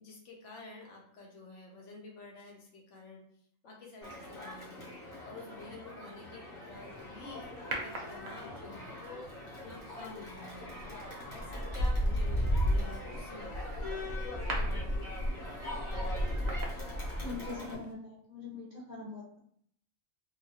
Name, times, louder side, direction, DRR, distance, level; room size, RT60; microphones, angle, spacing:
voice 1, 0.0-3.2 3.6-9.3 9.6-15.2, left 2 dB, 65° left, -1 dB, 0.9 m, -49 dB
Crowd, 4.0-17.7, left 2 dB, 90° left, 1.4 m, -44 dB
sound 1, 6.6-16.4, equal, 15° left, 1.0 m, -56 dB
sound 2, 7.7-8.7 10.6-10.9 11.4-17.6 17.8-17.9, equal, 85° right, 0.3 m, -32 dB
voice 2, 17.2-19.4, left 4 dB, 45° right, -6 dB, 0.7 m, -43 dB
2.8 x 2.3 x 2.7 m, 0.64 s
omnidirectional pair, 1.4 m